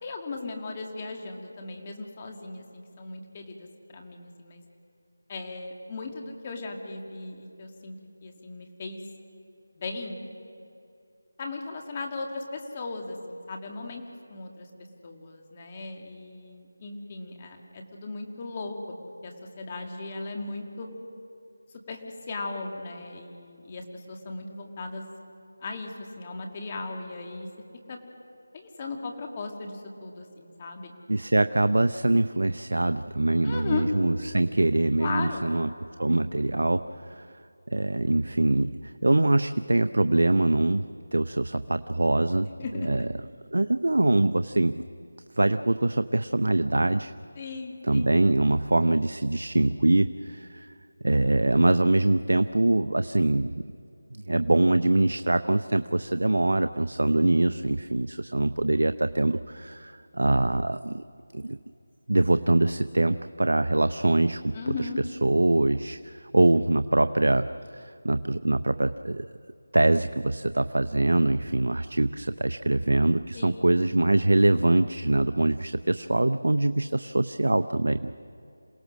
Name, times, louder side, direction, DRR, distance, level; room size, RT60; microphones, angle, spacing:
voice 1, 0.0-4.6 5.3-9.0 9.7-10.2 11.4-14.0 14.3-14.7 15.0-18.8 19.2-20.9 21.9-22.0 22.3-25.1 25.6-27.5 27.9-28.0 28.5-30.9 33.4-33.9 35.0-35.5 42.6-42.9 47.4-48.2 64.5-65.0 73.3-73.7, left 3 dB, 25° left, 3 dB, 2.0 m, -37 dB
voice 2, 31.1-35.7 36.0-37.3 37.7-42.5 42.8-43.1 43.5-44.8 45.4-47.1 47.8-50.7 51.0-53.6 54.1-61.0 61.3-61.6 62.1-64.9 65.2-67.5 67.7-69.3 69.7-78.1, right 2 dB, 80° right, 10 dB, 0.6 m, -24 dB
27.5 x 18.0 x 6.3 m, 2.6 s
figure-of-eight pair, 170°, 0 cm